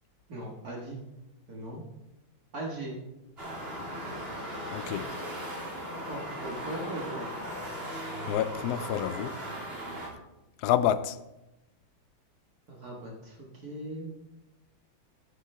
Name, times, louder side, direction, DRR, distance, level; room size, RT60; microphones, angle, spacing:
voice 1, 0.3-1.0 1.5-1.8 2.5-2.9 6.0-7.5 12.7-14.1, right 1 dB, 50° right, 2.0 m, -39 dB
sound 1, 3.4-10.1, equal, 30° right, 2.3 m, -38 dB
voice 2, 4.7-5.1 8.3-9.4 10.6-11.2, left 11 dB, 75° left, 0.9 m, -28 dB
13.5 x 9.3 x 3.3 m
omnidirectional pair, 2.1 m